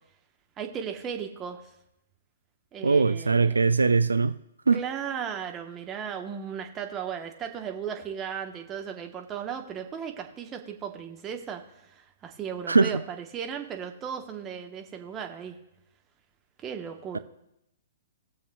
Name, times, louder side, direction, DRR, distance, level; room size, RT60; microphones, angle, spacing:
voice 1, 0.6-1.7 2.7-3.6 4.7-15.6 16.6-17.2, right 7 dB, 20° right, 1.1 m, -36 dB
voice 2, 2.8-4.4 4.7-4.8 12.7-13.0 17.1-17.2, right 4 dB, 75° right, 0.3 m, -21 dB
19.5 x 7.0 x 2.3 m
figure-of-eight pair, 120°, 0 cm